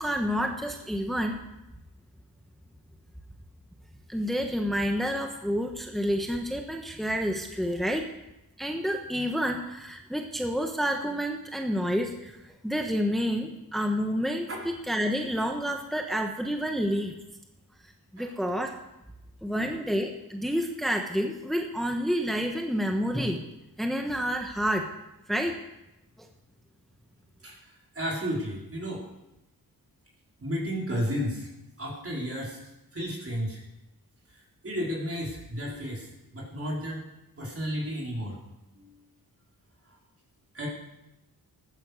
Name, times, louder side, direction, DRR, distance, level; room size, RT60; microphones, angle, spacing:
voice 1, 0.0-1.4 4.1-8.1 8.6-17.1 18.1-18.7 19.4-23.4 23.8-24.9 25.3-25.6, equal, ahead, 3 dB, 1.2 m, -29 dB
voice 2, 27.4-29.0 30.4-31.5 31.8-32.6 32.9-33.6 34.3-37.0 37.4-38.4 38.8-38.9 40.5-40.7, equal, 35° right, -3 dB, 4.3 m, -33 dB
15.0 x 12.5 x 6.5 m, 0.94 s
wide cardioid pair, 125°, 38 cm